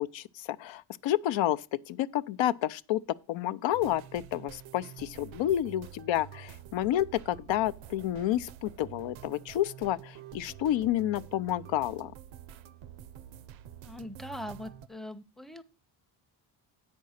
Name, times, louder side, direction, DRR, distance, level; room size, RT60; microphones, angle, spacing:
voice 1, 0.0-3.0 3.3-12.1, left 12 dB, 75° left, 0.6 m, -30 dB
sound 1, 3.7-14.9, right 10 dB, 85° right, 0.7 m, -48 dB
voice 2, 13.8-15.6, left 1 dB, ahead, 0.6 m, -41 dB
8.4 x 5.3 x 6.3 m
cardioid pair, 95°, 45 cm